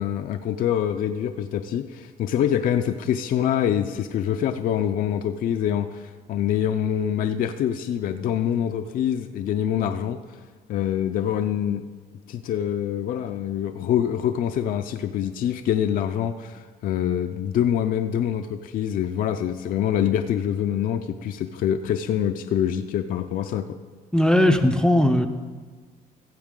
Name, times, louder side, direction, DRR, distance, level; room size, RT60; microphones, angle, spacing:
voice 1, 0.0-10.2 10.7-11.8 12.3-23.8, left 9 dB, 55° left, 7 dB, 0.4 m, -25 dB
voice 2, 24.1-25.3, left 1 dB, 5° left, 7 dB, 0.5 m, -18 dB
15.0 x 7.2 x 3.7 m, 1.4 s
cardioid pair, 110°, 17 cm